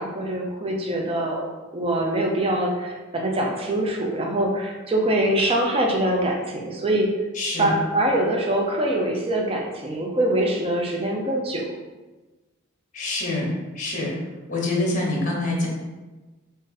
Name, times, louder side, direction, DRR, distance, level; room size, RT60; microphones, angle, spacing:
voice 1, 0.0-1.4 1.7-7.1 7.6-11.6, right 1 dB, 25° right, 1 dB, 0.5 m, -24 dB
voice 2, 7.4-7.7 12.9-13.5 13.8-14.1 14.5-15.7, left 2 dB, 35° left, -2 dB, 0.9 m, -25 dB
3.8 x 2.6 x 4.0 m, 1.2 s
head